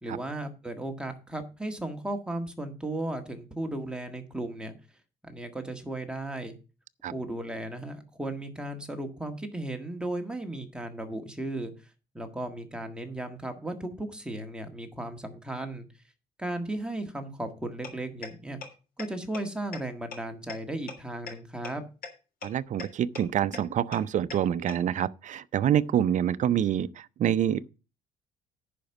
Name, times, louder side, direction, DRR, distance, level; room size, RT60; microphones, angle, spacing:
voice 1, 0.0-4.7 5.2-6.5 7.1-11.7 12.1-15.9 16.4-18.6 19.0-21.8, right 1 dB, 5° right, 1.7 m, -35 dB
sound 1, 17.8-17.9 18.2-18.3 18.6-18.7 19.0-19.1 19.3-19.4 19.7-19.8 20.1-20.2 20.5-20.6 20.9-21.0 21.3-21.4 21.6-21.7 22.0-22.1 22.4-22.5 22.8-22.9 23.1-23.2 23.5-23.6 23.9-24.0 24.3-24.4 24.7-24.8, left 6 dB, 60° left, 3.2 m, -37 dB
voice 2, 22.4-27.8, right 10 dB, 45° right, 0.5 m, -27 dB
10.0 x 5.2 x 7.0 m
cardioid pair, 110°, 17 cm